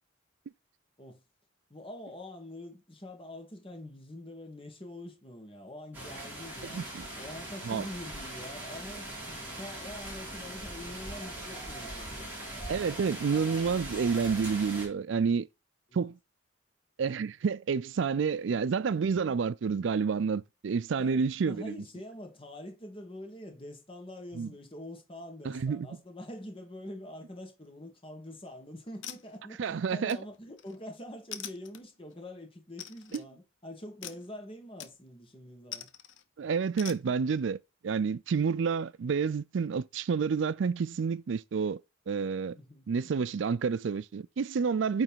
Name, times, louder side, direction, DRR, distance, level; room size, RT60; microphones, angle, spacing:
voice 1, 1.7-12.3 15.9-16.0 20.9-35.9 36.9-37.1 42.5-43.1, left 1 dB, 25° left, 1.6 m, -45 dB
sound 1, 5.9-14.9, right 1 dB, 10° right, 2.9 m, -41 dB
voice 2, 6.7-7.1 7.7-7.9 12.7-15.5 15.9-16.2 17.0-21.7 24.4-24.5 25.4-25.9 29.6-30.2 33.1-33.2 36.4-37.6 37.8-41.8 42.1-42.6 42.9-45.0, right 5 dB, 70° right, 0.4 m, -29 dB
sound 2, 28.2-28.5 29.0-29.7 30.1-30.8 31.3-32.1 32.8-33.3 34.0-34.3 34.8-35.2 35.7-36.2 36.8-37.0, left 10 dB, 70° left, 0.7 m, -44 dB
8.9 x 3.3 x 4.5 m
head